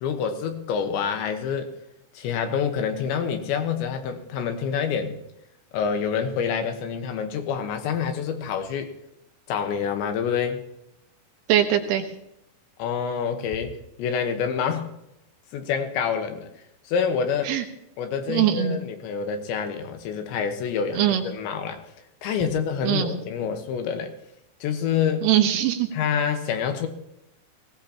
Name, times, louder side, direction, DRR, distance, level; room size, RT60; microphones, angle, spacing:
voice 1, 0.0-1.7 2.2-5.2 5.7-8.9 9.5-10.6 12.8-13.7 14.0-14.9 15.5-16.5 16.9-17.5 18.0-21.8 22.2-24.1 24.6-25.3 25.9-26.9, left 7 dB, 80° left, 6 dB, 3.4 m, -27 dB
voice 2, 11.5-12.0 17.5-17.7 18.3-18.8 21.0-21.2 22.8-23.2 25.2-25.9, right 11 dB, 90° right, 5 dB, 3.7 m, -21 dB
20.0 x 17.0 x 2.9 m, 0.82 s
omnidirectional pair, 5.3 m